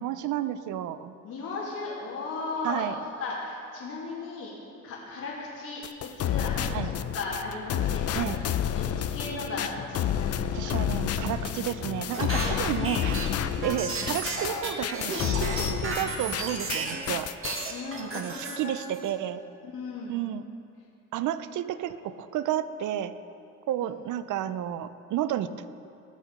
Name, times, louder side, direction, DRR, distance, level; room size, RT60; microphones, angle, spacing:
voice 1, 0.0-1.1 2.6-3.0 6.7-6.9 8.2-8.4 10.5-13.2 13.6-17.3 18.0-19.4 20.1-20.4 21.1-23.1 23.7-25.5, right 11 dB, 75° right, 13 dB, 0.6 m, -31 dB
voice 2, 1.2-4.5 4.8-8.4 8.7-10.6 12.3-12.5 12.7-13.4 17.7-18.8 19.6-20.2 23.8-23.9, left 3 dB, 75° left, -8 dB, 2.6 m, -36 dB
sound 1, 5.8-16.8 17.1-17.7, left 9 dB, 55° left, 0.5 m, -30 dB
sound 2, 12.1-17.1 17.4-19.1, right 3 dB, 45° right, 1.8 m, -33 dB
19.5 x 6.5 x 5.3 m, 2.6 s
cardioid pair, 90°, 30 cm